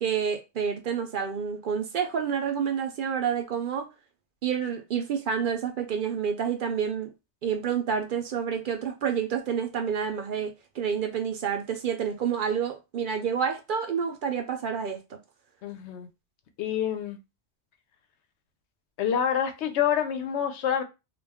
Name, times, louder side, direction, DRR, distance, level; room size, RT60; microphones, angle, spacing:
voice 1, 0.0-3.9 4.4-7.1 7.4-15.2, right 7 dB, 60° right, 0.6 m, -29 dB
voice 2, 15.6-16.1 16.6-17.2 19.0-20.8, left 9 dB, 90° left, 0.9 m, -27 dB
2.4 x 2.2 x 3.4 m
omnidirectional pair, 1.1 m